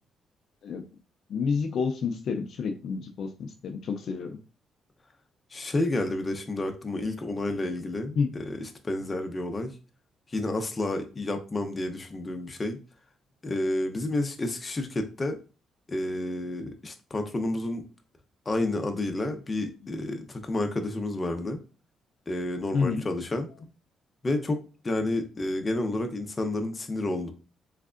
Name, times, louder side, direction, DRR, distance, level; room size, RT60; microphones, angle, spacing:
voice 1, 1.3-4.4 8.2-8.3 22.7-23.0, left 5 dB, 65° left, 4 dB, 0.4 m, -29 dB
voice 2, 5.5-9.7 10.3-12.8 13.4-15.4 15.9-17.8 18.5-21.6 22.3-23.5 24.2-27.3, left 2 dB, 25° left, 5 dB, 0.7 m, -30 dB
3.5 x 3.2 x 2.5 m, 0.34 s
cardioid pair, 90°, 0 cm